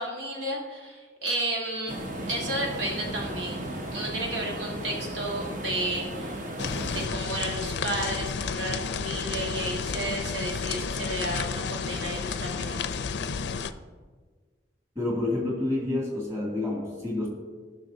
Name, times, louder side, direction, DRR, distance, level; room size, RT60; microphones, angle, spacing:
voice 1, 0.0-2.0 2.3-6.3 6.9-13.0, right 1 dB, 85° right, -1 dB, 1.6 m, -32 dB
sound 1, 1.9-7.1, right 1 dB, 45° right, 1.0 m, -35 dB
sound 2, 6.6-13.7, left 5 dB, 65° left, 0.4 m, -31 dB
voice 2, 15.0-17.3, left 2 dB, 15° right, -3 dB, 2.2 m, -28 dB
15.5 x 6.2 x 2.7 m, 1.5 s
head